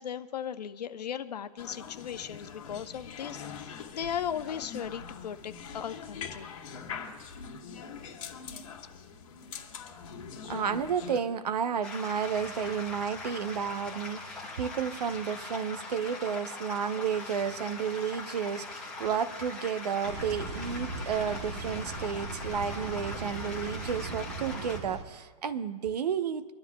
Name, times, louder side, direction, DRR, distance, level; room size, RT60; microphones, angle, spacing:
voice 1, 0.0-6.5, left 9 dB, 90° left, 10 dB, 0.9 m, -37 dB
sound 1, 1.6-11.2, left 6 dB, 55° left, 2.0 m, -43 dB
voice 2, 10.4-26.5, right 7 dB, 90° right, 10 dB, 0.9 m, -32 dB
sound 2, 11.8-24.8, left 3 dB, 5° left, 1.5 m, -41 dB
sound 3, 20.0-25.0, right 3 dB, 45° right, 1.2 m, -39 dB
25.0 x 12.5 x 2.3 m, 1.5 s
hypercardioid pair, 180°, 20 cm